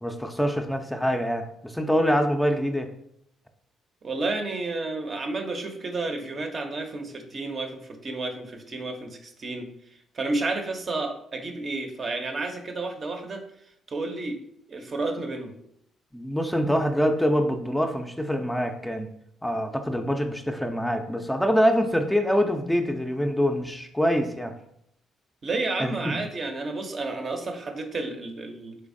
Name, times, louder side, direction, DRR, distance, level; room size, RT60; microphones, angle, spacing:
voice 1, 0.0-2.9 16.1-19.1 19.4-24.5 25.8-26.2, equal, 5° left, 5 dB, 0.4 m, -25 dB
voice 2, 4.0-9.7 10.1-13.4 13.9-14.4 14.7-15.6 25.4-28.8, right 3 dB, 50° right, 4 dB, 0.5 m, -31 dB
3.3 x 3.0 x 2.5 m, 0.72 s
hypercardioid pair, 55°, 0 cm